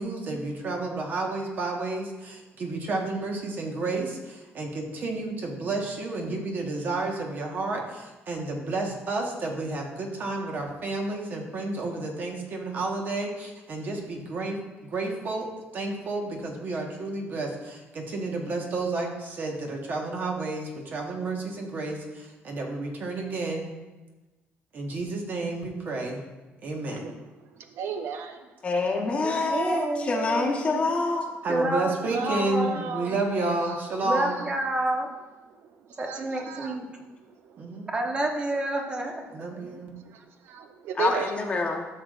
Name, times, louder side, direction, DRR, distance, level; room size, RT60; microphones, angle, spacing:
voice 1, 0.0-23.7 24.7-26.2 26.6-27.1 31.4-34.4 37.6-37.9 39.3-39.9, right 2 dB, 45° right, 1 dB, 1.3 m, -31 dB
voice 2, 26.8-28.6 31.3-31.4 31.6-31.7 32.0-33.2 33.6-33.8 34.1-34.5 35.5-37.9 39.7-41.4, right 7 dB, 65° right, 6 dB, 0.5 m, -37 dB
voice 3, 28.6-31.4 41.0-41.9, left 3 dB, 30° left, 1 dB, 1.1 m, -26 dB
voice 4, 29.2-30.8 31.5-32.8 34.0-35.1 36.0-36.8 37.9-39.8, right 1 dB, 20° right, 2 dB, 1.0 m, -29 dB
13.0 x 6.5 x 2.5 m, 1.2 s
cardioid pair, 160°, 4 cm